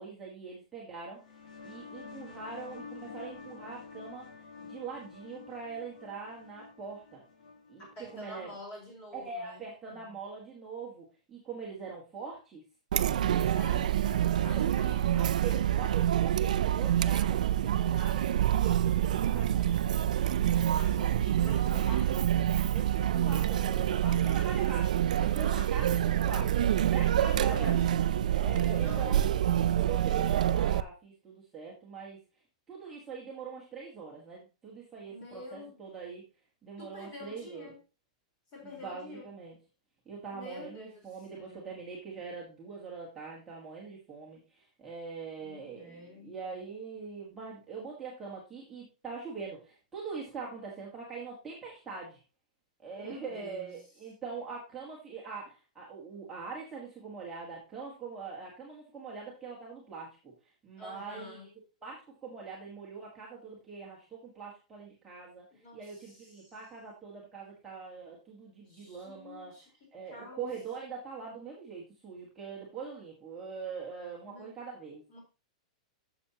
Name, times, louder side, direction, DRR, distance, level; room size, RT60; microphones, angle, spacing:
voice 1, 0.0-1.4 1.6-7.2 7.7-7.9 8.1-8.5 9.1-12.6 14.4-14.7 15.1-19.8 21.6-22.1 22.7-26.6 26.9-27.7 28.2-32.2 32.7-36.2 36.6-37.7 38.6-39.5 40.0-52.2 52.8-60.3 60.6-61.5 61.8-65.4 65.7-69.6 69.9-75.0, right 5 dB, 10° right, -5 dB, 1.5 m, -43 dB
sound 1, 1.1-8.5, left 5 dB, 70° left, 1.8 m, -49 dB
voice 2, 7.9-9.6 9.9-10.1 13.2-15.4 20.6-22.3 24.2-24.4 27.2-28.3 28.8-29.7 35.0-35.9 36.8-37.8 38.5-39.3 40.3-41.0 41.3-41.8 45.4-46.4 52.9-53.7 60.8-61.5 65.6-66.5 68.7-69.7 70.0-70.5 74.2-74.6 75.1-75.2, left 2 dB, 25° left, 0 dB, 4.1 m, -48 dB
Chatter, 12.9-30.8, right 11 dB, 85° right, 0.5 m, -27 dB
10.5 x 7.0 x 2.9 m, 0.29 s
supercardioid pair, 175°, 4 cm